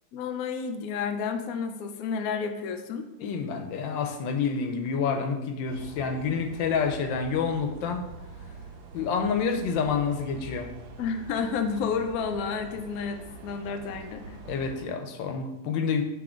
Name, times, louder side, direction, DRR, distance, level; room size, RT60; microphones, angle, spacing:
voice 1, 0.1-3.1 11.0-14.4, left 6 dB, 70° left, 6 dB, 0.9 m, -31 dB
voice 2, 3.2-8.0 8.9-10.7 14.5-16.0, left 6 dB, 85° left, 5 dB, 1.4 m, -28 dB
sound 1, 5.7-14.9, right 4 dB, 90° right, 1.5 m, -44 dB
6.0 x 3.7 x 5.0 m, 0.95 s
omnidirectional pair, 2.0 m